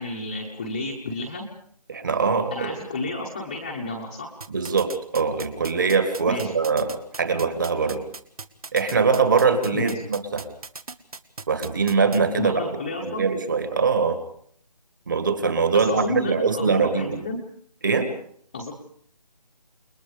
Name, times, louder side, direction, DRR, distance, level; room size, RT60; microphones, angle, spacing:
voice 1, 0.0-1.5 2.5-4.3 6.3-6.5 9.7-10.0 12.4-13.2 15.7-17.4 18.5-18.7, left 2 dB, 10° left, -1 dB, 1.2 m, -31 dB
voice 2, 1.9-2.8 4.5-8.0 8.7-10.5 11.5-12.6 13.0-14.2 15.1-17.2 17.8-18.1, right 5 dB, 30° right, 8 dB, 2.2 m, -22 dB
sound 1, 4.4-12.2, right 4 dB, 60° right, 1.7 m, -37 dB
29.5 x 21.0 x 5.1 m, 0.62 s
figure-of-eight pair, 175°, 21 cm